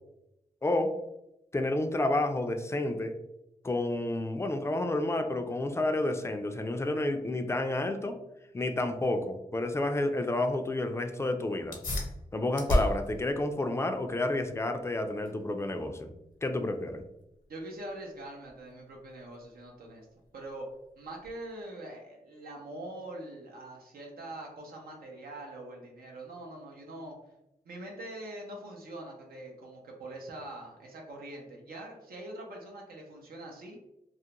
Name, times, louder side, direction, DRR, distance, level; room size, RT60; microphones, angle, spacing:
voice 1, 0.6-0.9 1.5-3.1 3.6-8.1 8.5-11.8 12.3-16.1 16.4-17.0, left 2 dB, 20° left, 6 dB, 0.3 m, -30 dB
sound 1, 11.6-21.6, left 1 dB, 65° left, 0.7 m, -37 dB
voice 2, 17.5-20.1 20.3-20.7 21.0-27.2 27.6-33.8, right 1 dB, 85° right, 0 dB, 0.6 m, -43 dB
2.3 x 2.1 x 2.8 m, 0.88 s
cardioid pair, 55°, 15 cm